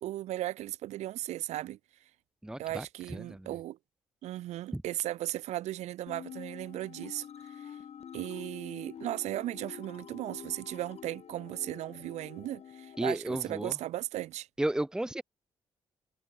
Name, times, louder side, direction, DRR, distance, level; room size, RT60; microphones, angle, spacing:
voice 1, 0.0-1.8 2.6-3.8 4.2-7.8 8.1-14.5, right 14 dB, 85° right, 1.3 m, -36 dB
voice 2, 2.4-2.9 3.1-3.5 4.7-4.8 13.0-13.8 14.6-15.2, right 1 dB, 5° right, 0.6 m, -33 dB
sound 1, 6.1-13.1, left 8 dB, 65° left, 4.8 m, -47 dB
supercardioid pair, 50°, 11 cm